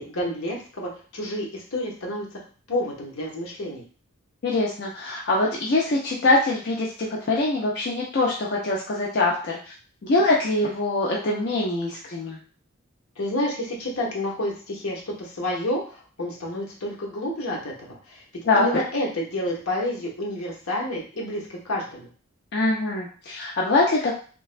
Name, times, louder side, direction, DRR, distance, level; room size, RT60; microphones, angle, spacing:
voice 1, 0.0-2.4 2.7-3.8 13.2-22.1, left 1 dB, 85° left, -2 dB, 0.9 m, -29 dB
voice 2, 4.4-9.6 10.0-12.4 18.4-18.7 22.5-24.1, left 2 dB, 50° left, -3 dB, 0.4 m, -23 dB
3.2 x 2.1 x 2.4 m, 0.40 s
head